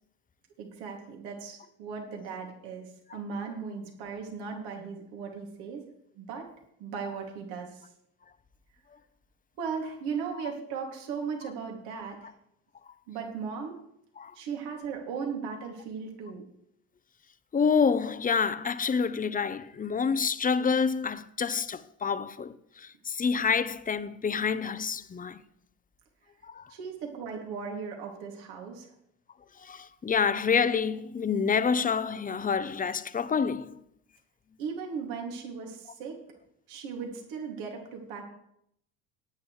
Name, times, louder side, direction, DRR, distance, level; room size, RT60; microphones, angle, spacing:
voice 1, 0.6-5.8 6.2-6.5 6.8-7.8 9.6-12.3 13.1-13.8 14.3-16.4 26.7-28.9 34.6-36.2 36.7-38.2, right 5 dB, 70° right, 2.7 m, -37 dB
voice 2, 17.5-25.4 26.4-26.7 29.6-33.8, left 6 dB, 20° left, 0.8 m, -28 dB
18.0 x 9.3 x 3.3 m
hypercardioid pair, 70°, 39 cm